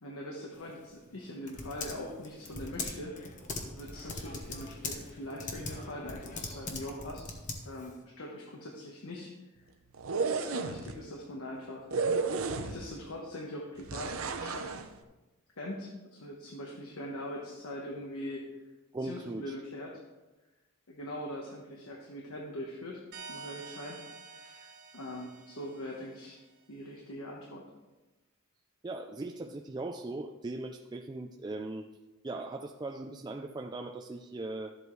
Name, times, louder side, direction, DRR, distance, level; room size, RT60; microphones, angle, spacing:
voice 1, 0.0-3.2 3.6-7.3 7.6-9.3 10.2-11.9 12.6-14.7 15.6-18.5 19.0-20.0 20.9-23.0 23.3-26.4 26.7-27.6, left 1 dB, 90° left, -2 dB, 1.2 m, -42 dB
Typing, 0.5-8.0, left 3 dB, 35° left, 1.1 m, -41 dB
sound 1, 9.9-10.9 11.9-13.0 13.9-14.9, right 4 dB, 75° right, 0.7 m, -32 dB
voice 2, 18.9-19.4 28.8-31.9 32.2-34.7, right 2 dB, 20° right, 3 dB, 0.3 m, -39 dB
sound 2, 23.1-26.5, right 4 dB, 50° right, 1.4 m, -49 dB
12.5 x 7.9 x 3.2 m, 1.1 s
head